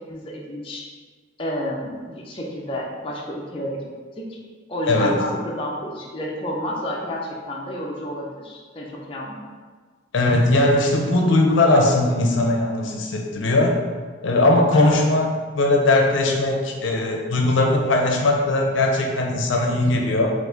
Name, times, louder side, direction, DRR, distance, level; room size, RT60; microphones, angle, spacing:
voice 1, 0.1-0.9 1.4-3.8 4.2-4.4 4.7-9.4 14.7-15.0, equal, 25° left, -3 dB, 0.5 m, -30 dB
voice 2, 4.9-5.3 10.1-13.8 14.2-15.3 15.5-20.3, left 2 dB, 70° left, 1 dB, 0.6 m, -19 dB
4.5 x 2.4 x 3.8 m, 1.5 s
head